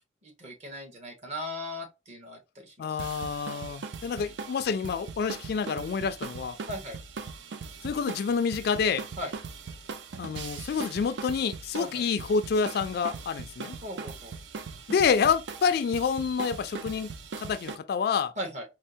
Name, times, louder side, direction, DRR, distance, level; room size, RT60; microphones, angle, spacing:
voice 1, 0.2-3.0 6.7-7.0 9.2-9.3 11.8-12.0 13.8-14.3 18.4-18.6, left 1 dB, 40° right, 1.0 m, -38 dB
voice 2, 2.8-6.6 7.8-9.0 10.2-13.8 14.9-18.3, left 6 dB, 60° left, 0.3 m, -28 dB
sound 1, 3.0-17.8, right 5 dB, 75° right, 0.4 m, -40 dB
4.3 x 2.0 x 2.6 m
head